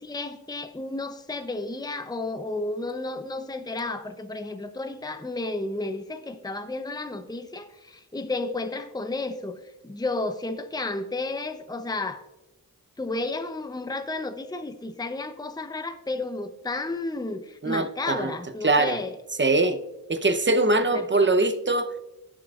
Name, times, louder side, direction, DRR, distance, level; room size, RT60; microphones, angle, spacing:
voice 1, 0.0-12.2 13.0-19.2 20.9-21.3, left 2 dB, 10° left, 0.8 m, -32 dB
voice 2, 17.6-18.3 18.6-19.0 19.4-19.8 20.1-21.9, right 2 dB, 30° right, 0.9 m, -22 dB
17.0 x 7.5 x 2.5 m
cardioid pair, 40°, 37 cm